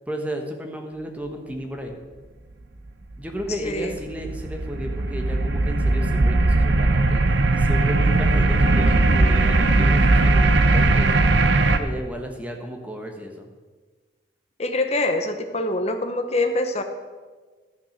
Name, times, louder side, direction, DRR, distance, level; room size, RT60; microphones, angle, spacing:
voice 1, 0.1-2.0 3.2-11.3 11.7-13.5, equal, 10° right, 3 dB, 1.3 m, -33 dB
sound 1, 3.4-11.8, right 2 dB, 80° right, 0.8 m, -19 dB
voice 2, 3.6-4.0 14.6-16.8, left 2 dB, 35° left, 7 dB, 1.1 m, -24 dB
13.0 x 6.4 x 6.6 m, 1.4 s
head